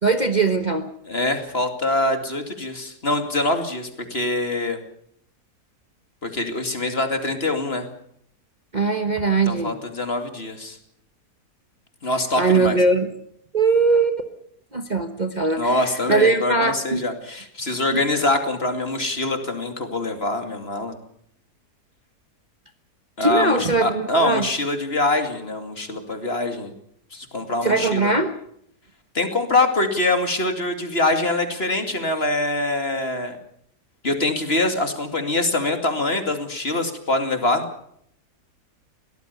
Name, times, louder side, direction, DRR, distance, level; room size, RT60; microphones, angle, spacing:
voice 1, 0.0-0.9 8.7-9.8 12.4-13.1 13.5-14.3 14.7-17.0 17.9-18.0 23.2-24.5 27.6-28.3, right 3 dB, 30° right, 6 dB, 1.2 m, -20 dB
voice 2, 1.1-4.8 6.2-7.9 9.5-10.8 12.0-12.8 15.6-21.0 23.2-26.7 27.1-28.1 29.1-33.4 34.0-37.6, left 2 dB, 40° left, 6 dB, 2.7 m, -24 dB
22.0 x 18.0 x 6.9 m, 0.69 s
omnidirectional pair, 1.7 m